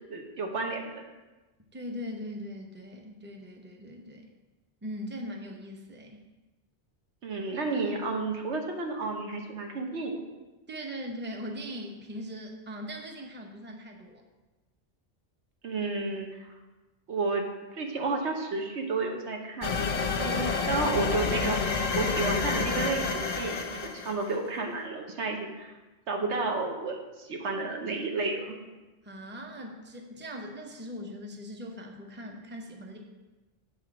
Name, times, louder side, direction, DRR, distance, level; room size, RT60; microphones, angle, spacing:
voice 1, 0.1-1.0 7.2-10.2 15.6-16.5 17.1-25.7 26.1-28.5, right 3 dB, 90° right, 2 dB, 1.3 m, -32 dB
voice 2, 1.7-4.3 4.8-6.2 10.7-14.2 29.0-33.0, equal, 10° right, 2 dB, 0.6 m, -40 dB
sound 1, 19.6-24.4, left 4 dB, 45° left, 0.6 m, -29 dB
8.0 x 3.7 x 6.0 m, 1.2 s
omnidirectional pair, 1.1 m